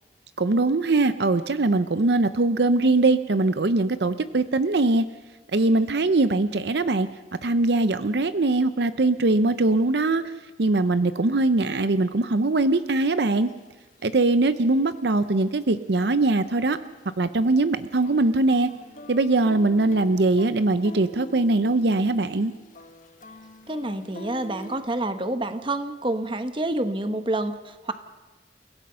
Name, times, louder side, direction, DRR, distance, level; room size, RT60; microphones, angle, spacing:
voice 1, 0.4-5.1 5.5-7.1 7.4-10.2 10.6-13.5 14.0-16.8 17.2-18.7 19.1-22.5, right 2 dB, 65° right, 12 dB, 0.7 m, -21 dB
sound 1, 13.5-14.7 15.0-15.2 15.6-17.1 17.4-24.8, right 1 dB, 45° left, 1.5 m, -44 dB
voice 2, 23.7-27.9, right 1 dB, 30° right, 9 dB, 1.1 m, -28 dB
29.5 x 17.0 x 5.7 m, 1.2 s
head